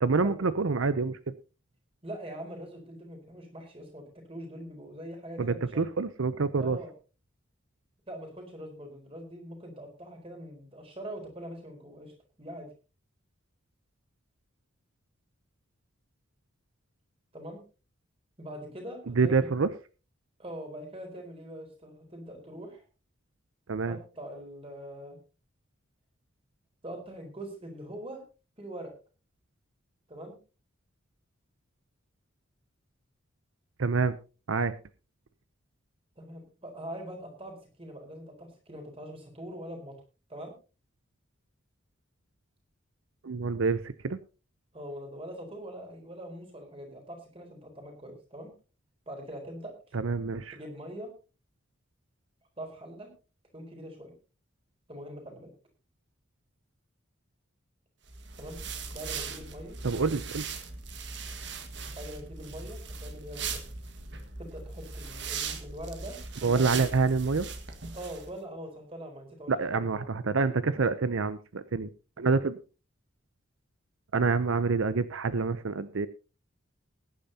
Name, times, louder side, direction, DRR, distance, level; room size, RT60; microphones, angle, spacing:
voice 1, 0.0-1.3 5.4-6.8 19.2-19.7 23.7-24.0 33.8-34.2 34.5-34.7 43.2-44.2 49.9-50.6 59.8-60.4 66.4-67.5 69.5-71.9 72.2-72.6 74.1-76.1, right 4 dB, 80° right, 13 dB, 0.6 m, -27 dB
voice 2, 2.0-5.9 6.6-6.9 8.1-12.1 12.4-12.7 17.3-17.6 18.4-19.5 20.4-22.8 23.8-25.2 26.8-28.2 28.6-28.9 30.1-30.4 36.2-40.0 40.3-40.5 44.7-48.5 49.1-50.0 50.5-51.1 52.6-53.1 53.5-54.1 54.9-55.5 58.4-58.6 58.9-59.8 61.9-63.6 64.4-66.8 67.9-70.1, right 1 dB, 25° right, 3 dB, 4.2 m, -43 dB
sound 1, 58.1-68.3, right 5 dB, 60° right, 1.7 m, -39 dB
20.5 x 10.5 x 2.8 m, 0.33 s
head